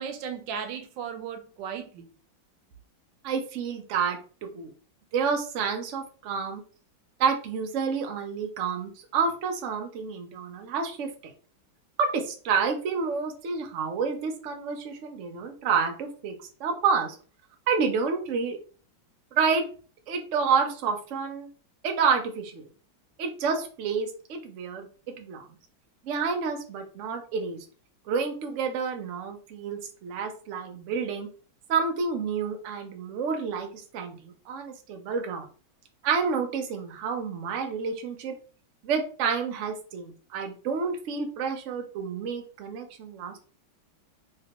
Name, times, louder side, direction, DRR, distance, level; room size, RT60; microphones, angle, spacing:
voice 1, 0.0-2.1, right 7 dB, 75° right, 1.2 m, -36 dB
voice 2, 3.2-4.7 5.1-6.6 7.2-11.1 12.0-16.3 16.6-17.2 17.7-18.6 19.3-19.7 20.1-21.5 21.8-22.7 23.2-24.9 25.2-25.5 26.0-27.6 28.1-31.3 31.7-33.7 33.9-35.5 36.0-38.4 38.8-43.4, right 5 dB, 90° right, 0.6 m, -29 dB
3.1 x 2.9 x 2.9 m
omnidirectional pair, 2.2 m